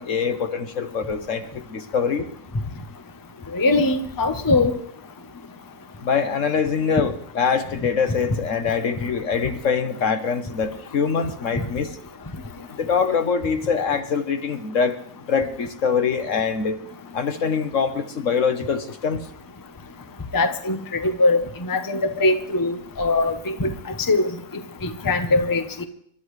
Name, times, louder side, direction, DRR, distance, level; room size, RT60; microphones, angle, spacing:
voice 1, 0.0-2.3 6.0-11.9 12.8-15.0 15.3-16.8 17.1-19.2, left 6 dB, 60° left, 8 dB, 1.4 m, -24 dB
voice 2, 3.5-4.7 11.6-11.7 20.3-23.7 24.1-24.3 24.8-25.8, left 2 dB, 15° left, 7 dB, 0.8 m, -21 dB
28.5 x 12.5 x 3.3 m, 0.65 s
omnidirectional pair, 1.6 m